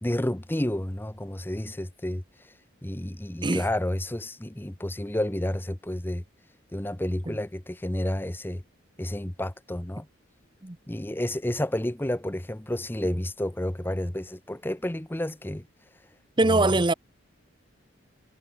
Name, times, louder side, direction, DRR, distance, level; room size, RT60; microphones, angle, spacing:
voice 1, 0.0-2.2 2.8-6.2 6.7-8.6 9.0-10.1 10.9-15.6 16.4-16.7, left 1 dB, 10° left, 0.8 m, -30 dB
voice 2, 16.4-16.9, right 2 dB, 25° right, 0.8 m, -22 dB
head